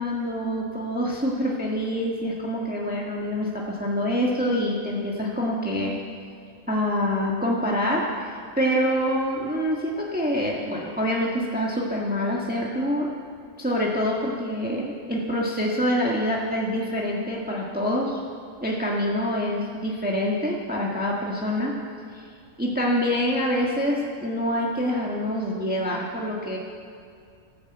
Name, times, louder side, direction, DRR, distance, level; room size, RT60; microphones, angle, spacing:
voice 1, 0.0-5.9 6.7-8.3 8.6-13.1 13.6-18.2 18.6-21.7 22.1-22.2 22.6-26.6, equal, 5° right, -3 dB, 1.5 m, -26 dB
14.5 x 10.5 x 7.9 m, 2.4 s
omnidirectional pair, 1.5 m